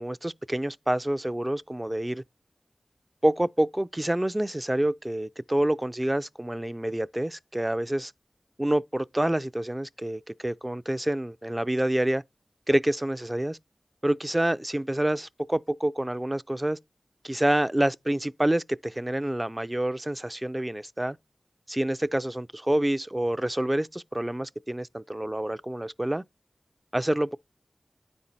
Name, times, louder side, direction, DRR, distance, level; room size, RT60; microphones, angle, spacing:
voice 1, 0.0-2.2 3.2-8.1 8.6-12.2 12.7-13.6 14.0-16.8 17.2-21.2 21.7-26.2 26.9-27.4, right 1 dB, 20° right, 0.3 m, -27 dB
9.4 x 4.3 x 4.0 m
wide cardioid pair, 50°, 0 cm